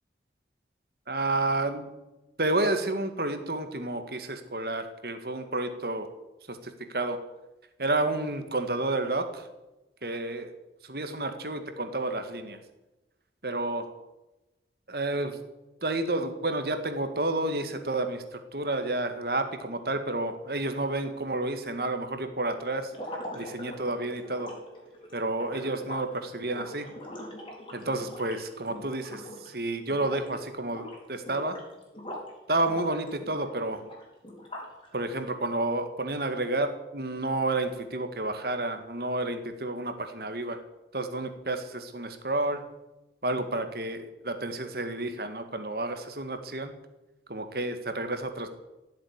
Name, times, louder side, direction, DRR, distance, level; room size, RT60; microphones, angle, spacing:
voice 1, 1.1-1.9 2.4-6.1 6.5-7.2 7.8-9.5 10.0-10.5 10.8-12.6 13.4-13.9 14.9-15.4 15.8-22.9 23.3-24.5 25.1-26.9 27.7-31.6 32.5-33.8 34.9-40.6 40.9-42.6 43.2-46.7 47.3-48.5, right 2 dB, 55° right, 8 dB, 1.8 m, -30 dB
sound 1, 22.9-29.6 29.9-30.4 30.7-32.3 32.7-34.9, equal, 30° left, 4.1 m, -42 dB
16.5 x 7.7 x 9.6 m, 1.0 s
head